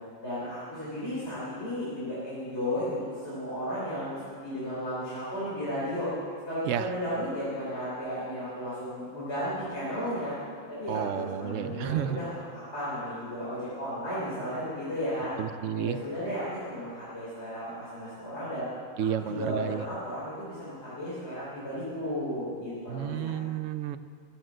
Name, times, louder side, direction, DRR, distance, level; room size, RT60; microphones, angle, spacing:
voice 1, 0.2-6.1 6.5-10.3 10.7-15.3 15.7-18.6 19.2-23.3, equal, 55° left, -11 dB, 4.1 m, -34 dB
voice 2, 10.9-12.2 15.4-16.0 19.0-19.8 22.9-24.0, right 10 dB, 75° right, 12 dB, 0.9 m, -31 dB
15.5 x 7.4 x 7.6 m, 2.1 s
omnidirectional pair, 1.4 m